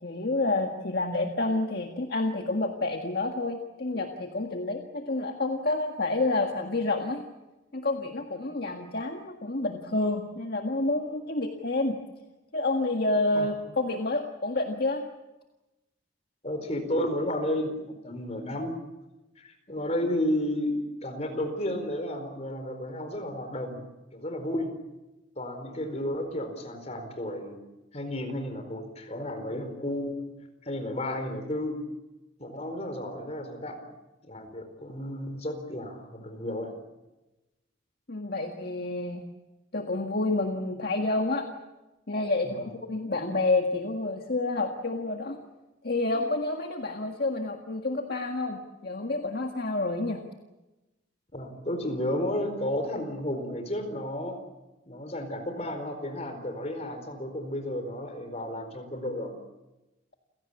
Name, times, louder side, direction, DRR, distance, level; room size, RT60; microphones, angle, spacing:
voice 1, 0.0-7.2 7.7-12.0 12.5-15.0 38.1-39.2 39.7-41.5 42.1-45.4 45.8-50.2, left 2 dB, 55° left, 3 dB, 1.8 m, -29 dB
voice 2, 16.4-18.7 19.4-20.7 21.0-23.8 24.1-24.7 25.4-27.6 27.9-30.3 30.6-31.8 32.4-33.8 34.2-36.7 42.4-42.7 51.3-54.4 54.9-59.3, left 1 dB, 35° left, 7 dB, 4.4 m, -32 dB
29.0 x 17.0 x 8.5 m, 1.0 s
head